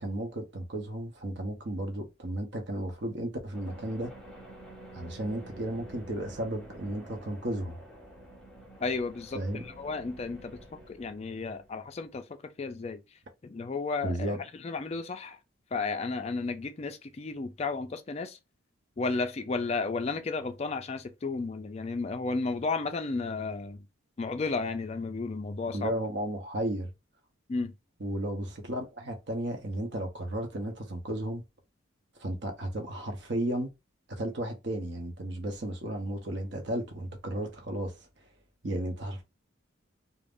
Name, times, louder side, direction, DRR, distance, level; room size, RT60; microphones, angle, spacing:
voice 1, 0.0-4.1 4.9-7.8 9.3-9.7 14.0-14.4 25.7-26.9 28.0-31.4 32.2-33.7 34.1-37.9 38.6-39.2, right 1 dB, 55° right, 0.7 m, -34 dB
sound 1, 3.5-12.1, right 1 dB, ahead, 0.7 m, -49 dB
voice 2, 8.8-10.6 10.9-13.0 13.4-15.4 15.7-18.4 19.0-23.8 24.2-25.9 27.5-27.7, left 3 dB, 30° left, 0.3 m, -33 dB
2.5 x 2.0 x 3.5 m
head